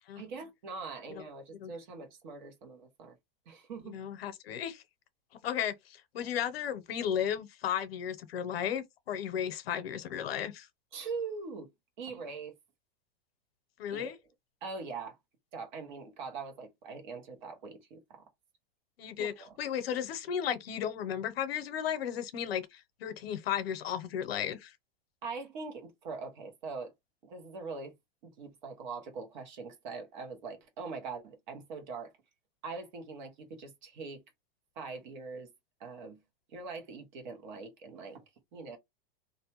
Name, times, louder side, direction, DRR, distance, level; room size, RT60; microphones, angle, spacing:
voice 1, 0.2-3.2 3.5-4.0 10.9-11.7 12.0-12.6 13.9-14.1 14.6-15.2 15.5-18.2 19.2-19.6 25.2-26.9 27.2-28.0 28.2-32.1 32.6-34.2 34.8-35.5 35.8-36.2 36.5-38.2 38.5-38.8, right 4 dB, 50° right, 1.0 m, -42 dB
voice 2, 3.8-4.8 5.4-10.7 13.8-14.2 19.0-24.7, left 9 dB, 75° left, 0.7 m, -34 dB
2.5 x 2.2 x 2.9 m
supercardioid pair, 165°, 30 cm